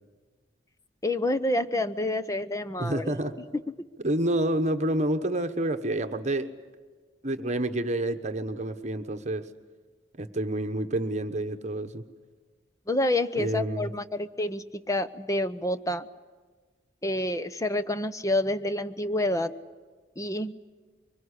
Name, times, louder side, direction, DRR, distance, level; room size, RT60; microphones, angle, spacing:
voice 1, 1.0-3.1 12.9-16.1 17.0-19.5 20.2-20.5, left 1 dB, 20° left, 12 dB, 0.8 m, -28 dB
voice 2, 2.8-3.3 4.0-6.5 7.2-9.5 10.2-12.0 13.3-13.9, right 1 dB, 40° right, 8 dB, 1.2 m, -28 dB
24.5 x 21.5 x 9.9 m, 1.4 s
head